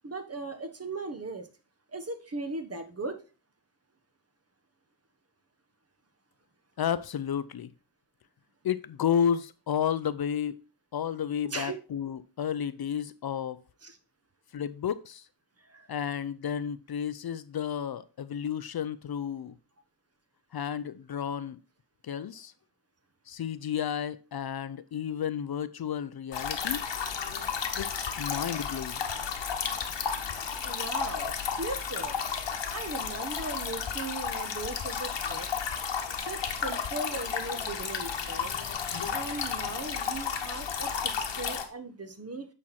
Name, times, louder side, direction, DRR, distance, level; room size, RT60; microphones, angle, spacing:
voice 1, 0.0-1.5 1.9-3.2 11.5-11.8 13.8-14.0 15.7-15.9 30.6-32.1 32.7-35.5 36.2-38.5 39.1-40.9 41.4-42.5, right 2 dB, 35° right, 1.2 m, -38 dB
voice 2, 6.8-7.7 8.6-10.6 10.9-13.6 14.5-15.3 15.9-19.5 20.5-21.6 22.0-22.5 23.3-26.8 27.8-29.0, left 8 dB, 60° left, 0.5 m, -32 dB
sound 1, 26.3-41.6, left 6 dB, 80° left, 1.2 m, -33 dB
8.6 x 4.4 x 4.3 m
cardioid pair, 65°, 43 cm